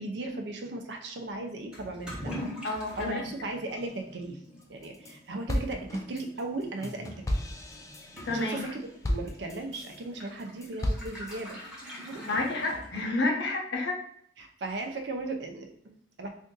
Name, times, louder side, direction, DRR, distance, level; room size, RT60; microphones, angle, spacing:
voice 1, 0.0-2.3 3.0-4.4 4.7-7.4 8.3-8.8 9.1-11.6 12.0-12.2 14.4-16.3, right 2 dB, 75° right, 4 dB, 0.5 m, -37 dB
Toilet flush / Liquid, 1.7-13.4, equal, 5° right, 0.8 m, -45 dB
voice 2, 2.6-3.2 8.3-8.7 12.2-14.0, left 2 dB, 80° left, 1 dB, 0.7 m, -30 dB
sound 1, 4.6-5.1 5.5-10.0 10.4-11.4, left 1 dB, 20° left, 0.3 m, -34 dB
2.6 x 2.5 x 3.7 m, 0.65 s
head